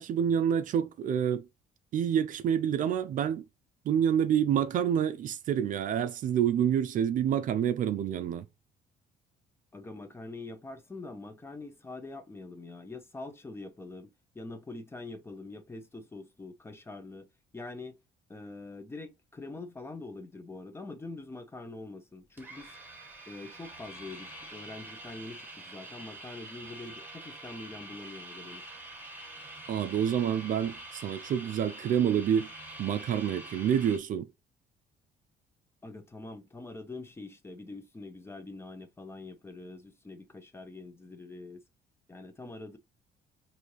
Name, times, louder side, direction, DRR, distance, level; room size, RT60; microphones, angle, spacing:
voice 1, 0.0-1.4 1.9-3.4 3.9-8.4 29.7-32.5 32.8-34.3, right 9 dB, 50° right, 0.4 m, -28 dB
voice 2, 9.7-17.3 17.5-18.0 18.3-22.7 23.3-28.6 35.8-41.6 42.1-42.8, left 2 dB, 15° left, 0.6 m, -44 dB
sound 1, 22.4-34.0, right 1 dB, 10° right, 1.4 m, -46 dB
4.9 x 2.7 x 3.0 m
cardioid pair, 110°, 17 cm